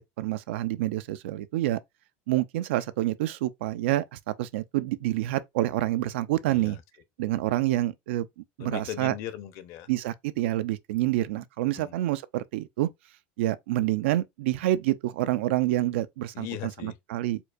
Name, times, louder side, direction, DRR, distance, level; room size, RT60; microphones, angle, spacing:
voice 1, 0.0-1.8 2.3-6.8 7.2-8.3 8.6-9.1 9.9-12.9 13.4-16.5 16.8-17.4, right 15 dB, 90° right, 0.4 m, -27 dB
voice 2, 6.4-6.8 8.6-9.9 11.7-11.9 16.3-17.0, left 11 dB, 55° left, 0.6 m, -38 dB
4.4 x 2.3 x 2.4 m
supercardioid pair, 145°, 6 cm